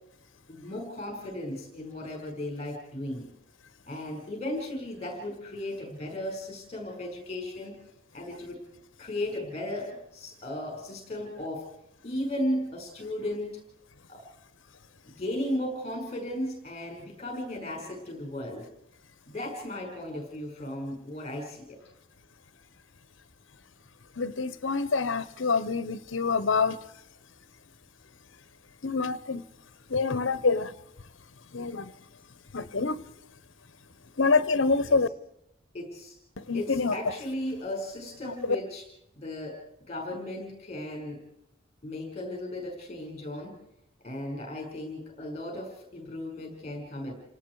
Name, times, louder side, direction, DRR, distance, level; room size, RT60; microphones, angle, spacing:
voice 1, 0.5-3.3 3.9-7.8 8.1-8.6 9.0-11.6 12.0-13.6 14.1-14.2 15.0-18.7 19.3-21.8 34.9-35.0 35.7-36.2 36.5-38.9 39.1-39.6 39.9-41.3 41.8-43.6 44.0-47.1, left 1 dB, 30° left, 1 dB, 5.6 m, -35 dB
voice 2, 24.2-26.8 28.8-29.4 29.9-30.7 31.5-31.9 32.5-33.0 34.2-35.1 36.5-36.9 38.2-38.6, left 4 dB, 70° left, 16 dB, 0.9 m, -26 dB
29.5 x 18.5 x 4.8 m, 0.81 s
head